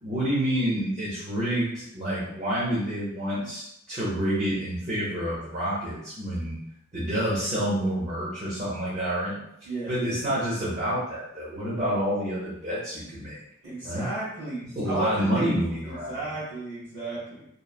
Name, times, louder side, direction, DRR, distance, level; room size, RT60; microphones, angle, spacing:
voice 1, 0.0-6.6 6.9-9.4 9.9-13.4 13.8-14.1 14.7-16.1, equal, 30° right, -10 dB, 0.8 m, -28 dB
voice 2, 9.6-10.0 13.6-17.5, right 2 dB, 50° right, -11 dB, 1.4 m, -35 dB
3.1 x 2.1 x 2.4 m, 0.75 s
head